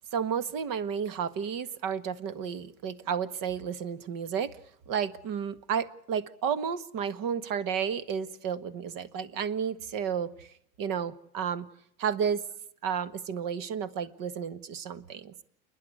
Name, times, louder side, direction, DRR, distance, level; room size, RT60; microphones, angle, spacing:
voice 1, 0.1-4.5 4.9-10.5 10.8-11.7 12.0-12.4 12.8-15.4, right 7 dB, 50° right, 15 dB, 1.7 m, -32 dB
29.0 x 11.0 x 9.7 m, 0.70 s
supercardioid pair, 125°, 43 cm